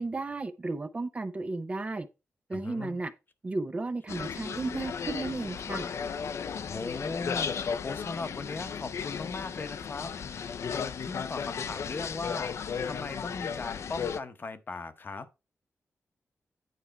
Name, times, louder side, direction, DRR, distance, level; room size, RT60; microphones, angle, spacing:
voice 1, 0.0-2.1 2.5-3.1 3.4-5.9, right 3 dB, 25° right, 0.5 m, -34 dB
voice 2, 2.5-3.0 6.2-6.3 6.6-15.3, left 4 dB, 40° left, 0.8 m, -39 dB
sound 1, 4.1-14.2, left 6 dB, 65° left, 0.5 m, -35 dB
9.2 x 4.4 x 4.2 m
wide cardioid pair, 140°, 5 cm